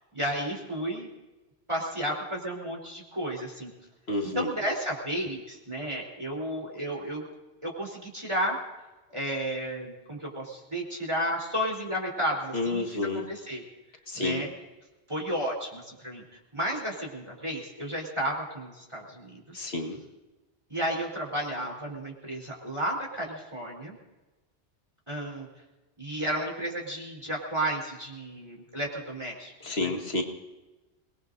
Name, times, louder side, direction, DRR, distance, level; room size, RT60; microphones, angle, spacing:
voice 1, 0.1-1.1 1.7-3.7 4.2-7.2 7.6-8.6 9.1-13.6 14.1-14.5 15.1-19.6 20.7-24.0 25.1-25.5 26.0-29.9, right 1 dB, 25° right, -2 dB, 3.7 m, -32 dB
voice 2, 4.1-4.5 12.5-13.2 14.1-14.4 19.5-20.0 29.6-30.2, left 2 dB, 65° left, 3 dB, 2.0 m, -29 dB
27.5 x 20.0 x 2.6 m, 1.1 s
omnidirectional pair, 1.1 m